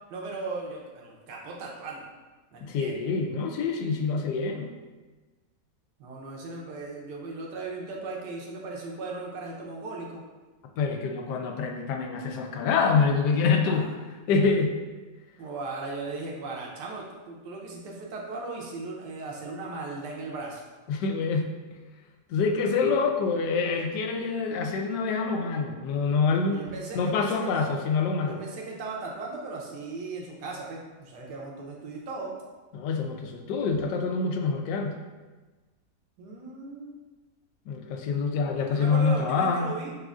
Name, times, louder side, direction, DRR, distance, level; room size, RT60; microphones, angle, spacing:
voice 1, 0.1-2.1 2.5-2.9 6.0-10.2 13.5-13.9 15.4-20.6 26.5-27.7 28.3-32.3 36.2-36.9 38.7-40.0, right 3 dB, 85° right, -2 dB, 1.4 m, -37 dB
voice 2, 2.6-4.7 10.8-13.9 14.3-14.7 20.9-21.5 22.3-26.6 26.9-28.4 32.7-35.0 37.7-39.7, left 4 dB, 85° left, 3 dB, 1.2 m, -26 dB
6.2 x 2.5 x 2.4 m, 1.3 s
omnidirectional pair, 1.8 m